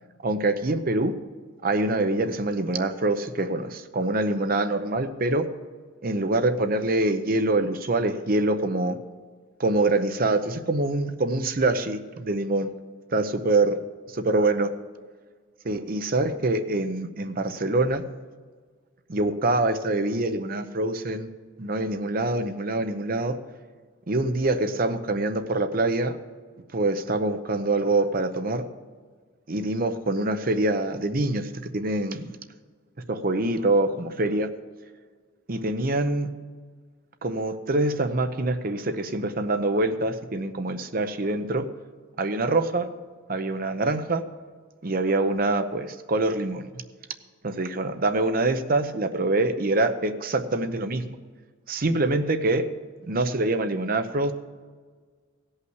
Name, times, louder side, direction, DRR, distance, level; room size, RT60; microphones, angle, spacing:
voice 1, 0.2-1.1 1.6-5.5 6.0-9.0 9.6-12.7 13.1-13.8 14.2-14.7 15.6-18.0 19.1-21.3 21.6-23.4 24.1-26.2 26.7-28.6 29.5-32.4 33.1-34.5 35.5-36.3 37.2-41.6 42.2-42.9 43.3-44.2 44.8-46.7 47.4-51.0 51.7-52.7 53.0-54.3, right 2 dB, 45° right, 8 dB, 0.7 m, -25 dB
16.0 x 5.7 x 8.0 m, 1.5 s
head